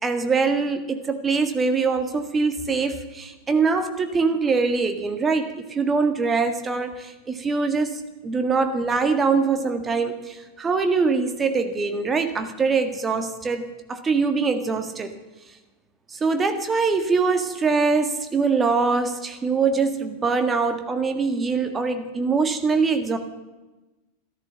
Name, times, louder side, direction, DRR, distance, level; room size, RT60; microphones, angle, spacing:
voice 1, 0.0-15.1 16.1-23.2, right 4 dB, 15° right, 7 dB, 1.7 m, -23 dB
14.5 x 13.5 x 7.1 m, 1.1 s
figure-of-eight pair, 90°, 0 cm